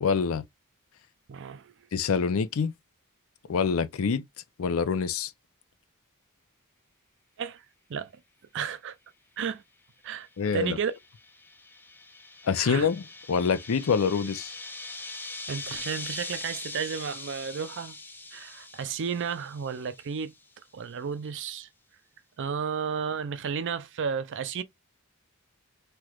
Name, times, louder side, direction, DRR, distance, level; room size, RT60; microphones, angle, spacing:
voice 1, 0.0-0.4 1.9-2.7 3.5-4.2 4.6-5.3 10.4-10.8 12.5-13.0 13.3-14.5, left 6 dB, 70° left, 0.5 m, -25 dB
voice 2, 1.3-1.7 7.4-7.6 7.9-8.1 8.5-9.0 9.4-9.6 10.0-10.3 10.5-10.9 12.6-12.9 15.5-18.0 18.3-20.3 20.7-21.7 22.4-24.6, right 6 dB, 60° right, 0.4 m, -32 dB
sound 1, 10.7-20.3, left 3 dB, 10° left, 0.5 m, -42 dB
3.2 x 2.9 x 2.3 m
head